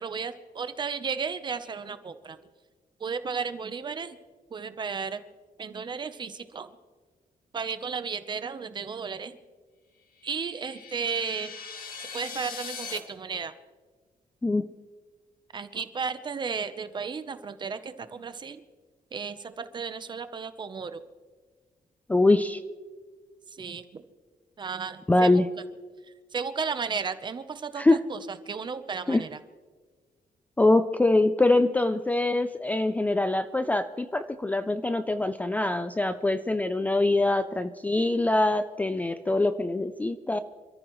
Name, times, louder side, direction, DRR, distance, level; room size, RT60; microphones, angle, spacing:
voice 1, 0.0-2.4 3.0-4.2 4.5-5.2 5.6-6.7 7.5-9.4 10.2-11.5 12.1-13.5 15.5-18.6 19.1-21.0 23.5-24.0 24.6-25.3 26.3-29.4, right 5 dB, 30° right, 11 dB, 0.8 m, -34 dB
sound 1, 10.2-13.0, left 5 dB, 75° left, 1.9 m, -40 dB
voice 2, 22.1-22.6 25.1-25.5 27.8-28.0 29.1-29.2 30.6-40.4, left 2 dB, 10° left, 10 dB, 0.4 m, -24 dB
27.5 x 13.5 x 3.1 m, 1.4 s
wide cardioid pair, 175°, 15 cm